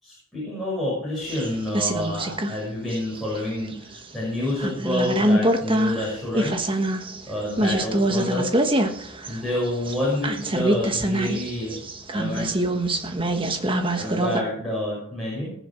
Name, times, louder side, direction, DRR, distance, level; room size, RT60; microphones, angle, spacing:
voice 1, 0.0-6.6 7.3-8.6 9.3-11.8 12.1-12.6 13.9-15.5, left 1 dB, ahead, -8 dB, 6.2 m, -28 dB
sound 1, 1.3-2.6 2.9-4.0 4.5-14.4, right 1 dB, 25° right, 1.3 m, -24 dB
19.5 x 6.9 x 6.3 m, 0.68 s
head